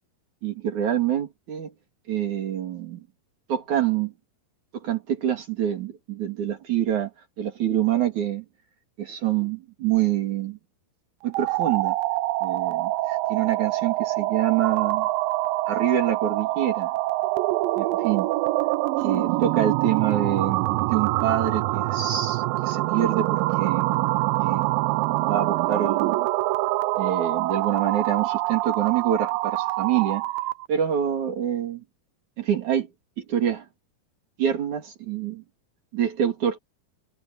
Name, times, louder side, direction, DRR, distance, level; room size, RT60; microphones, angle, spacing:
voice 1, 0.4-1.7 2.1-3.1 3.5-4.1 4.7-7.1 7.4-8.5 9.0-10.6 11.2-12.0 12.4-15.1 15.7-16.9 17.8-18.3 19.0-23.9 24.4-26.2 27.0-30.3 30.7-31.8 32.4-32.9 33.2-33.7 34.4-35.4 35.9-36.6, right 10 dB, 50° right, 3.9 m, -26 dB
sound 1, 11.2-30.7, right 18 dB, 80° right, 2.1 m, -25 dB
omnidirectional pair, 4.5 m